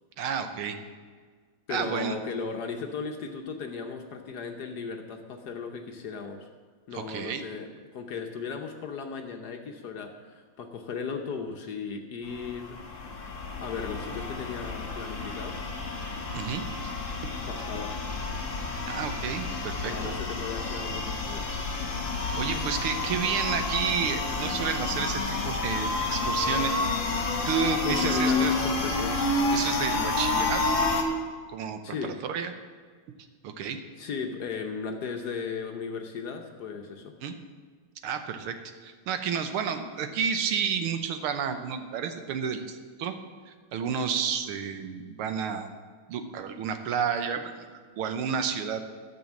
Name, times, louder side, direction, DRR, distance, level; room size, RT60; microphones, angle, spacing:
voice 1, 0.2-0.8 1.7-2.2 6.9-7.4 16.3-16.9 18.9-19.9 22.4-27.0 27.5-28.5 29.5-31.0 31.5-32.5 33.4-33.8 37.2-37.3 38.0-43.2 43.5-45.7 46.1-48.8, right 7 dB, 85° right, 8 dB, 1.8 m, -31 dB
voice 2, 1.7-6.5 6.9-15.7 17.4-18.0 19.8-21.7 27.8-29.2 31.8-32.1 34.0-37.1, left 5 dB, 60° left, 4 dB, 1.1 m, -36 dB
sound 1, 12.3-31.0, left 3 dB, 40° left, 1.6 m, -30 dB
12.5 x 6.2 x 7.2 m, 1.6 s
omnidirectional pair, 2.3 m